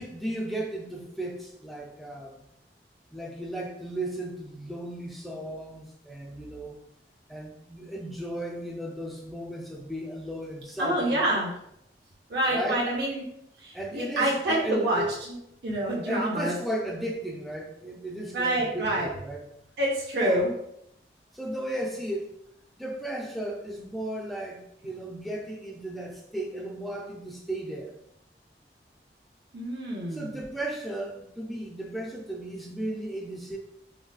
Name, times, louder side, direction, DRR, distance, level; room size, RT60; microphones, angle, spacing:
voice 1, 0.0-2.5 3.1-6.8 7.3-11.4 12.5-12.8 13.7-15.1 16.1-19.5 20.2-20.5 21.3-22.3 22.8-27.9 30.1-33.6, right 1 dB, ahead, 0 dB, 0.3 m, -35 dB
voice 2, 10.8-11.5 12.3-13.2 13.6-15.0 15.3-15.4 15.6-16.5 18.3-19.1 19.8-20.5 29.5-30.3, right 1 dB, 70° right, -4 dB, 0.6 m, -27 dB
3.8 x 2.2 x 2.2 m, 0.77 s
head